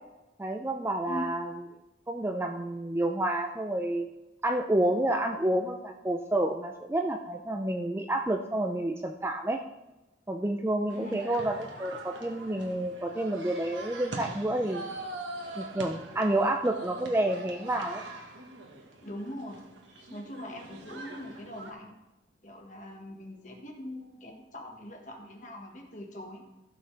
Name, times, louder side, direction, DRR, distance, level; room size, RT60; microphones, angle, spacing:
voice 1, 0.4-1.7 2.1-4.1 4.4-9.6 10.3-14.8 15.6-18.0, right 1 dB, 15° right, 4 dB, 0.5 m, -29 dB
sound 1, 10.9-21.7, right 2 dB, 85° right, 1.5 m, -43 dB
voice 2, 19.0-19.7 20.1-21.9 22.4-26.4, left 1 dB, 45° left, 1 dB, 1.6 m, -42 dB
16.0 x 6.6 x 3.4 m, 1.0 s
head